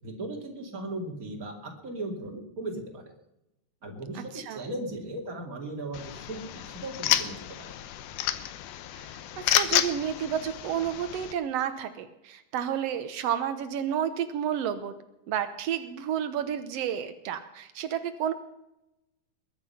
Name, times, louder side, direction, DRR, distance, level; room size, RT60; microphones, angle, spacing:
voice 1, 0.0-3.1 3.8-7.8, right 1 dB, 25° right, 2 dB, 2.5 m, -37 dB
sound 1, 5.9-11.3, left 12 dB, 90° left, 2.8 m, -30 dB
voice 2, 9.4-15.0 15.3-18.3, right 9 dB, 90° right, 9 dB, 1.3 m, -31 dB
21.5 x 10.5 x 5.7 m, 0.89 s
omnidirectional pair, 4.2 m